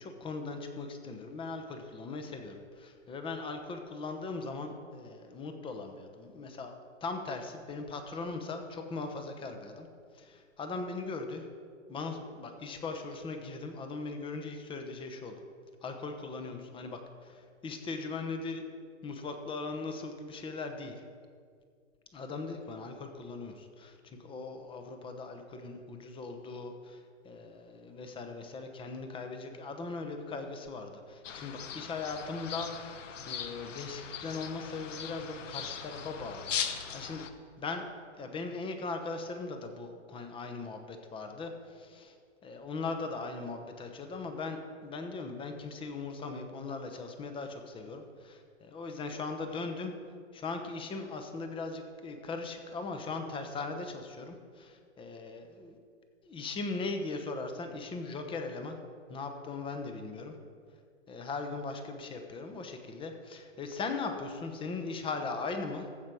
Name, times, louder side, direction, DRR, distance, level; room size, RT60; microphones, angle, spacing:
voice 1, 0.0-6.7 7.0-9.9 10.1-11.5 11.9-15.4 15.8-18.6 19.0-20.9 22.1-32.9 33.3-37.2 37.6-37.9 38.2-42.2 42.4-49.9 50.3-55.8 56.2-58.8 59.1-60.3 61.1-65.9, left 3 dB, 15° left, 6 dB, 0.9 m, -39 dB
sound 1, 31.2-37.3, left 7 dB, 80° left, 1.0 m, -39 dB
15.0 x 5.3 x 6.2 m, 2.1 s
hypercardioid pair, 130°, 37 cm